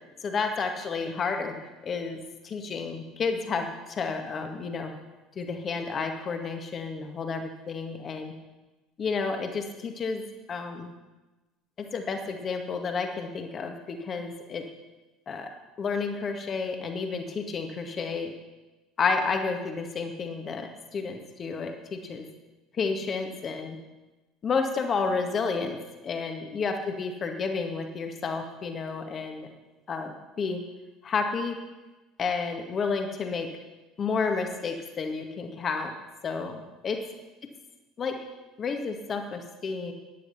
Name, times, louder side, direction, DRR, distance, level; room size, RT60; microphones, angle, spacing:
voice 1, 0.2-1.5 1.8-5.0 5.4-8.3 9.0-10.2 10.5-10.9 11.8-14.6 15.3-15.5 15.8-18.3 19.0-22.2 22.7-23.8 24.4-25.8 26.0-29.5 29.9-30.6 31.0-31.6 32.2-33.5 34.0-35.9 36.2-37.0 38.0-38.2 38.6-39.9, left 4 dB, 35° left, 4 dB, 2.0 m, -31 dB
13.5 x 10.5 x 5.7 m, 1.1 s
figure-of-eight pair, 65°, 0 cm